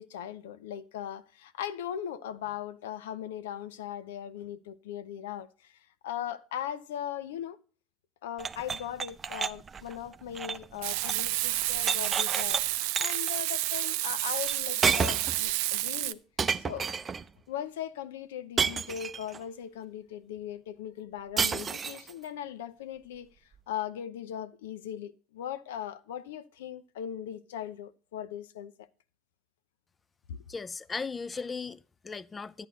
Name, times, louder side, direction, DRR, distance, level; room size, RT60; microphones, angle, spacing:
voice 1, 0.0-5.8 6.0-7.6 8.2-12.6 13.0-16.2 16.6-16.9 17.5-23.3 23.7-28.9 30.3-30.4, left 10 dB, 80° left, 0.8 m, -39 dB
sound 1, 8.4-11.3 11.6-12.6 13.0-13.4 14.5-14.6 14.8-15.4 16.4-17.3 18.6-19.4 21.4-22.1, right 6 dB, 30° right, 0.6 m, -30 dB
Frying (food), 10.8-16.1, right 18 dB, 70° right, 0.5 m, -30 dB
voice 2, 30.5-32.7, left 4 dB, 25° left, 0.6 m, -37 dB
11.0 x 9.6 x 3.9 m
hypercardioid pair, 75°, 0 cm